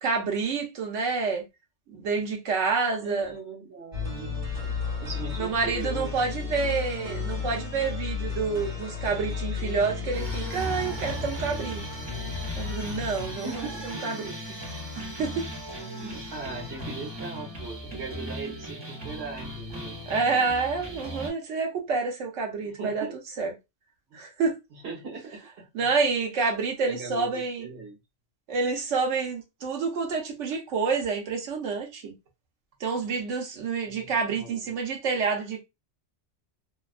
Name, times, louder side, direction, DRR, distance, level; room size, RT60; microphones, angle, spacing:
voice 1, 0.0-1.4 1.9-3.3 5.4-11.8 12.6-14.6 15.0-15.4 17.9-18.0 20.1-23.1 23.4-23.5 24.1-24.6 25.7-27.7 28.5-32.1 32.8-35.6, right 4 dB, 85° right, 1.1 m, -28 dB
voice 2, 3.0-4.4 5.0-6.7 13.3-14.2 15.7-20.0 22.6-23.2 24.1-24.2 24.7-25.9 26.3-26.5 26.8-28.0 33.8-34.6, right 3 dB, 65° right, 1.2 m, -40 dB
sound 1, 3.9-13.7, left 4 dB, 40° right, 1.5 m, -33 dB
sound 2, 10.1-21.3, equal, 25° right, 0.8 m, -38 dB
2.7 x 2.3 x 2.4 m
omnidirectional pair, 1.2 m